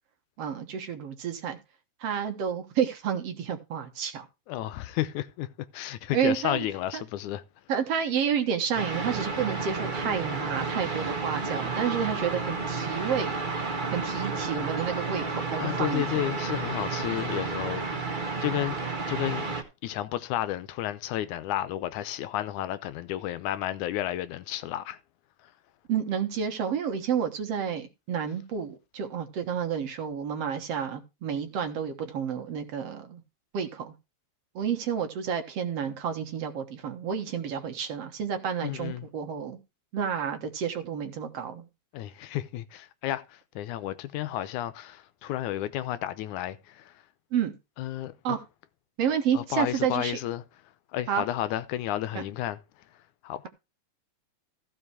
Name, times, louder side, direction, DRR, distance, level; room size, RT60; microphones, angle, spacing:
voice 1, 0.4-1.6 2.0-4.3 6.1-6.6 6.9-7.0 7.7-13.4 13.9-16.0 25.9-33.2 33.5-33.9 34.6-39.6 39.9-41.7 47.3-47.5 48.2-48.4 49.0-50.2 51.1-51.2 52.1-52.2, right 7 dB, 60° right, 2.2 m, -30 dB
voice 2, 4.5-7.4 15.6-18.0 18.4-18.8 19.1-19.5 19.8-25.0 38.6-39.1 41.9-46.9 47.8-48.1 49.3-50.4 50.9-52.6 53.2-53.5, left 13 dB, 80° left, 2.2 m, -32 dB
sound 1, 8.7-19.6, right 4 dB, 30° right, 0.8 m, -31 dB
15.0 x 5.5 x 4.7 m
omnidirectional pair, 3.5 m